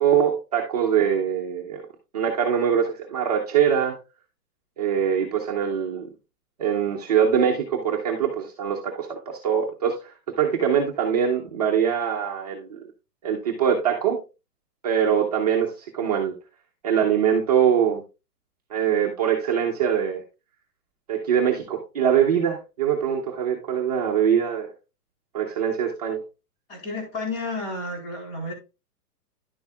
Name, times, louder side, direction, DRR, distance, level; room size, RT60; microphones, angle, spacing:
voice 1, 0.0-1.8 2.1-4.0 4.8-6.1 6.6-12.8 13.2-14.2 14.8-16.3 16.8-18.0 18.7-20.2 21.1-24.7 25.3-26.2, right 8 dB, 25° right, -1 dB, 0.9 m, -23 dB
voice 2, 26.7-28.5, left 2 dB, 35° left, 1 dB, 3.8 m, -31 dB
10.5 x 7.1 x 2.3 m, 0.29 s
hypercardioid pair, 175°, 48 cm